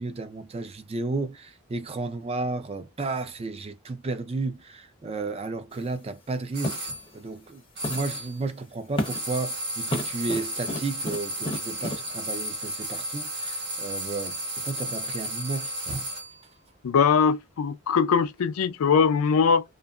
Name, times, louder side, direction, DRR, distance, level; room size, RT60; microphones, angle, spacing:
voice 1, 0.0-7.6 7.9-16.0, right 3 dB, 25° right, 0.4 m, -33 dB
sound 1, 5.7-5.9 6.6-7.0 7.8-8.2 9.0-9.4 9.9-12.1, left 1 dB, 25° left, 0.6 m, -33 dB
sound 2, 6.5-7.0 7.8-8.4 9.0-16.4, right 1 dB, 50° right, 1.0 m, -33 dB
voice 2, 16.8-19.6, left 6 dB, 80° left, 0.4 m, -21 dB
2.7 x 2.5 x 2.3 m
head